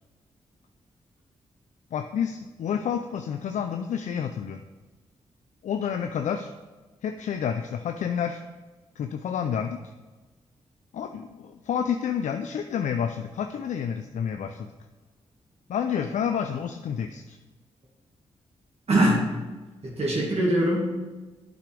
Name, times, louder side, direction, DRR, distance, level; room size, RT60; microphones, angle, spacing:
voice 1, 1.9-4.6 5.6-6.5 7.0-8.4 9.0-9.8 10.9-14.7 15.7-17.4, left 8 dB, 65° left, 7 dB, 0.4 m, -29 dB
voice 2, 18.9-19.3 19.8-20.9, right 1 dB, 50° right, -4 dB, 1.9 m, -22 dB
8.2 x 6.1 x 3.4 m, 1.2 s
supercardioid pair, 40°, 13 cm